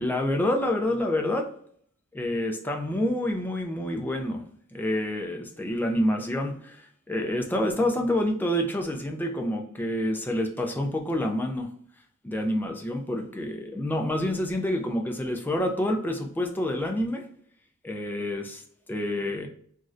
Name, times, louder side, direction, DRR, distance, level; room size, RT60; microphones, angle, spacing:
voice 1, 0.0-1.5 2.1-4.4 4.7-11.7 12.2-17.3 17.8-18.6 18.9-19.5, left 1 dB, 10° left, 0.3 m, -28 dB
3.1 x 2.4 x 2.5 m
head